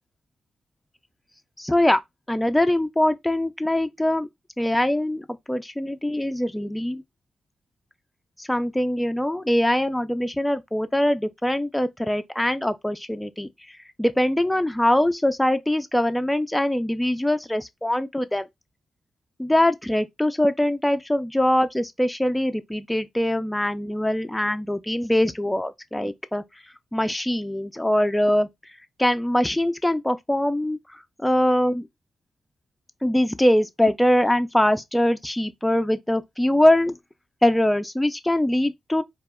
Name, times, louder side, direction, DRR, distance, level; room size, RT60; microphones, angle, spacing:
voice 1, 1.6-2.0 2.3-4.3 4.6-7.0 8.4-13.5 14.0-18.5 19.4-26.4 26.9-28.5 29.0-30.8 31.2-31.9 33.0-36.9 37.4-39.0, left 1 dB, 10° left, 0.4 m, -22 dB
2.1 x 2.0 x 3.5 m
supercardioid pair, 40°, 0 cm